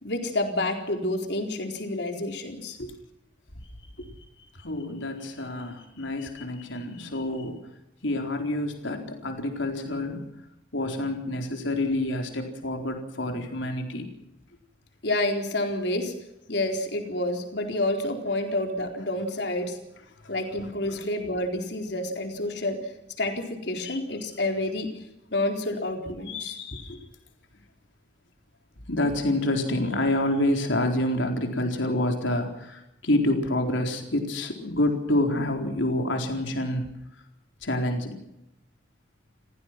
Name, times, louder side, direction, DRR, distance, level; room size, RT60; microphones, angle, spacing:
voice 1, 0.0-2.9 15.0-16.1 16.5-19.8 20.3-22.9 23.2-24.9 25.3-26.6 26.9-27.0, left 1 dB, 65° left, 4 dB, 4.4 m, -29 dB
voice 2, 4.6-7.6 8.0-10.2 10.7-14.0 20.2-20.3 23.8-24.0 26.3-26.9 28.9-36.8 37.6-38.1, left 1 dB, 85° left, 4 dB, 4.3 m, -27 dB
29.5 x 16.0 x 6.1 m, 0.85 s
head